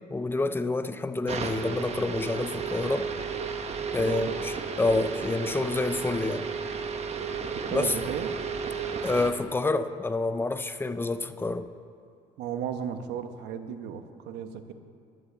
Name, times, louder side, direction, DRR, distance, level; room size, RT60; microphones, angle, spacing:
voice 1, 0.1-3.1 3.9-6.5 7.7-7.9 9.0-11.7, left 3 dB, 15° left, 0.6 m, -28 dB
sound 1, 1.3-9.3, right 5 dB, 40° right, 1.1 m, -33 dB
voice 2, 4.0-4.4 7.7-8.3 12.4-14.7, right 8 dB, 85° right, 1.1 m, -35 dB
12.0 x 10.0 x 7.2 m
cardioid pair, 110°, 17 cm